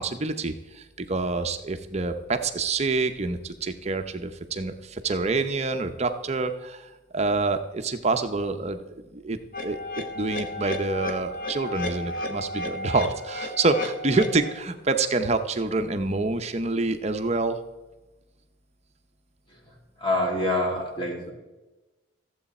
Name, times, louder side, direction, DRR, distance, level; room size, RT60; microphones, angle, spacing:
voice 1, 0.0-9.8 10.1-17.6, right 3 dB, 30° right, 8 dB, 0.7 m, -27 dB
sound 1, 9.5-14.5, left 2 dB, 45° left, 1.2 m, -33 dB
voice 2, 20.0-21.1, left 1 dB, 25° left, -1 dB, 2.3 m, -25 dB
14.5 x 8.0 x 4.2 m, 1.1 s
head